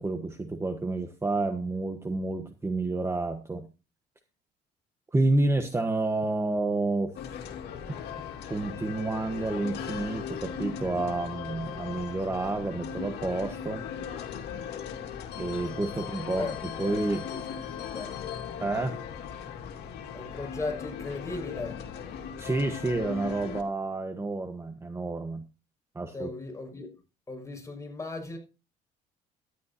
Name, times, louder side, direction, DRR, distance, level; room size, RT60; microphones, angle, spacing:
voice 1, 0.0-3.7 5.1-7.3 8.5-13.8 15.4-16.5 16.8-17.2 18.6-18.9 22.4-25.4 25.9-26.3, right 2 dB, 15° right, 1.2 m, -29 dB
sound 1, 7.2-23.6, left 8 dB, 75° left, 2.3 m, -38 dB
voice 2, 16.4-18.2 20.1-21.8 26.1-27.0 27.3-28.4, left 3 dB, 20° left, 6.0 m, -37 dB
13.5 x 11.0 x 2.8 m
cardioid pair, 110°, 17 cm